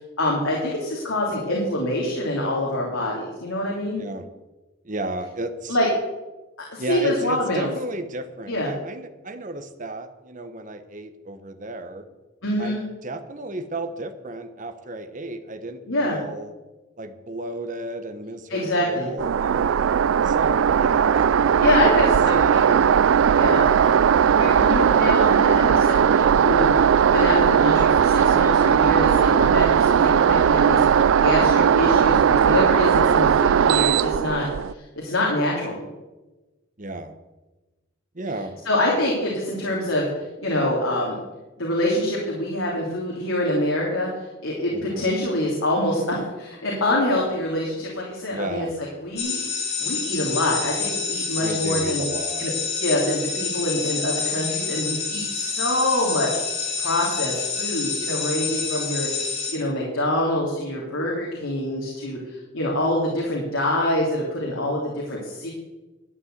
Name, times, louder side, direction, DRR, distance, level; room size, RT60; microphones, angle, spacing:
voice 1, 0.2-4.0 5.7-5.9 6.7-7.7 8.5-8.7 12.4-12.8 15.9-16.2 18.5-19.1 21.6-22.8 23.3-34.5 34.7-35.8 38.6-41.2 41.6-44.1 44.4-48.7 49.0-49.4 49.8-52.0 52.4-52.5 52.8-56.3 56.8-59.1 59.5-65.5, left 1 dB, 80° left, -3 dB, 3.1 m, -25 dB
voice 2, 4.8-5.8 6.8-12.0 12.6-16.5 17.0-19.9 20.2-22.7 36.8-37.2 38.1-38.5 44.7-45.2 48.3-48.7 51.3-52.5, right 1 dB, 40° right, 8 dB, 1.2 m, -33 dB
sound 1, 19.2-34.7, right 7 dB, 75° right, 0.4 m, -18 dB
sound 2, 49.2-59.5, left 5 dB, 30° left, 3.3 m, -28 dB
12.0 x 9.0 x 8.1 m, 1.1 s
head